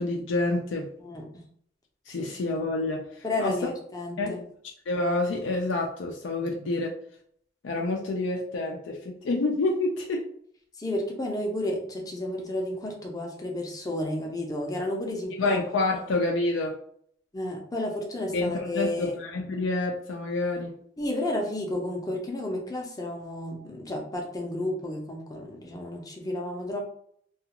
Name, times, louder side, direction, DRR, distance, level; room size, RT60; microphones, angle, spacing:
voice 1, 0.0-0.9 2.1-3.1 3.4-3.5 4.2-4.4 4.9-7.0 7.6-10.2 15.4-16.8 18.3-20.7, left 2 dB, 75° left, 0 dB, 0.4 m, -28 dB
voice 2, 1.0-1.4 2.2-2.3 3.2-4.5 10.8-15.6 17.3-19.2 21.0-26.8, left 1 dB, 20° left, 0 dB, 0.6 m, -32 dB
2.3 x 2.3 x 2.9 m, 0.64 s
head